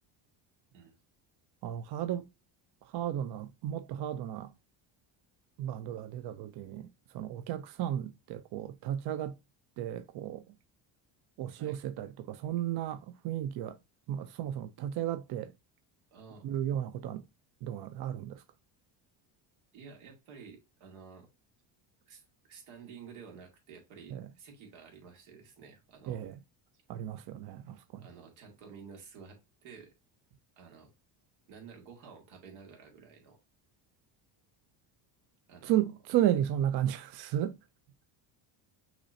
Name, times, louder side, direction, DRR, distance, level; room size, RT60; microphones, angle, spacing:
voice 1, 1.6-2.3 2.9-4.5 5.6-9.4 9.8-10.4 11.4-13.8 14.1-15.5 16.4-17.2 17.6-18.4 24.1-24.3 26.1-26.4 26.9-28.0 35.6-37.6, right 11 dB, 60° right, 0.5 m, -33 dB
voice 2, 16.1-16.5 19.7-21.3 22.0-26.2 26.7-26.8 27.9-29.9 30.6-30.9 31.5-33.4 35.5-35.8, right 6 dB, 90° right, 2.2 m, -51 dB
6.0 x 3.1 x 2.6 m
cardioid pair, 125°, 46 cm